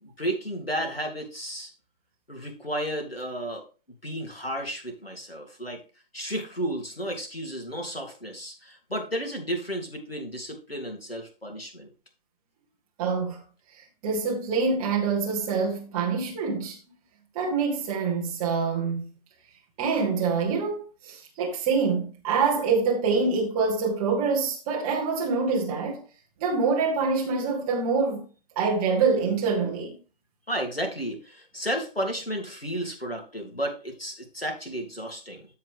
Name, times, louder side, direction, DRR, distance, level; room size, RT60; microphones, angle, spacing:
voice 1, 0.0-1.7 2.3-3.6 4.0-5.8 6.1-11.9 30.5-35.5, equal, 90° left, 3.2 m, -33 dB
voice 2, 13.0-13.4 14.0-16.8 17.3-19.0 19.8-26.0 26.4-28.2 28.6-29.9, right 4 dB, 5° right, 0.5 m, -25 dB
13.0 x 4.8 x 3.5 m
figure-of-eight pair, 140°, 29 cm